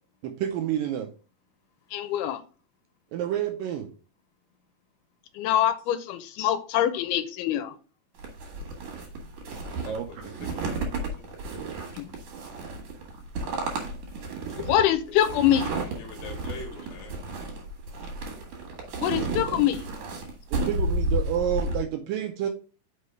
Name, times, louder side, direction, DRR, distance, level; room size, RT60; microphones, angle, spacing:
voice 1, 0.2-1.1 3.1-3.9 9.9-10.1 20.5-22.5, right 10 dB, 80° right, 2.1 m, -29 dB
voice 2, 1.9-2.4 5.3-7.8 11.9-12.1 14.7-15.7 19.0-19.9, left 11 dB, 85° left, 2.6 m, -24 dB
sound 1, 8.2-21.8, right 2 dB, 60° right, 2.9 m, -32 dB
voice 3, 9.8-11.3 14.6-14.7 16.0-17.2, left 3 dB, 65° left, 2.6 m, -44 dB
5.9 x 4.7 x 4.6 m
omnidirectional pair, 4.5 m